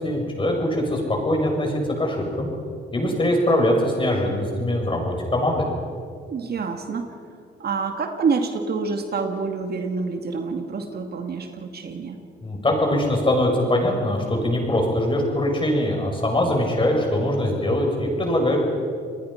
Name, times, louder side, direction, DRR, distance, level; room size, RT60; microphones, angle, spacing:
voice 1, 0.0-2.5 2.9-5.6 12.4-18.6, left 1 dB, 25° left, 1 dB, 6.9 m, -22 dB
voice 2, 6.3-7.2 7.6-12.2, right 4 dB, 55° right, 5 dB, 2.1 m, -27 dB
28.5 x 20.5 x 5.8 m, 2.3 s
cardioid pair, 90°, 20 cm